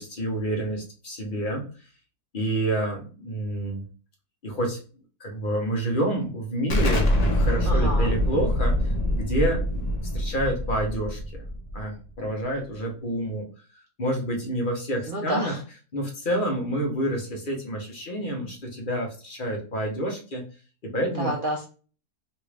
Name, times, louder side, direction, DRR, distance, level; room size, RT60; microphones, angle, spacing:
voice 1, 0.0-1.6 2.3-3.8 4.4-4.8 5.2-9.9 10.1-11.5 11.7-13.4 14.0-15.5 15.9-20.4 20.8-21.3, right 1 dB, 45° left, 0 dB, 0.8 m, -28 dB
Explosion, 6.7-12.1, equal, 60° left, 0.4 m, -24 dB
voice 2, 7.7-8.1 15.1-15.6 21.2-21.6, right 1 dB, 80° right, 0 dB, 0.4 m, -29 dB
3.2 x 2.4 x 3.2 m, 0.37 s
omnidirectional pair, 1.6 m